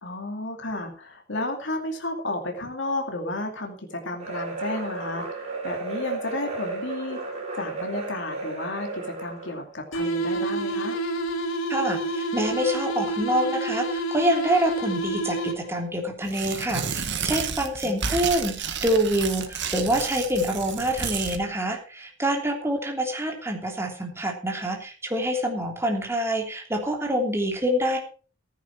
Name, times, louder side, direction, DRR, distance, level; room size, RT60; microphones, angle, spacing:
voice 1, 0.0-11.0 17.8-18.2, left 2 dB, 65° left, 2 dB, 2.6 m, -32 dB
sound 1, 4.2-9.6, right 3 dB, 35° right, 4.9 m, -34 dB
sound 2, 9.9-15.9, right 2 dB, 85° left, 3.6 m, -28 dB
voice 2, 11.7-28.0, right 1 dB, 15° right, 2 dB, 3.1 m, -26 dB
Tearing, 16.2-21.4, right 6 dB, 60° right, 1.7 m, -31 dB
14.5 x 10.5 x 4.6 m, 0.37 s
head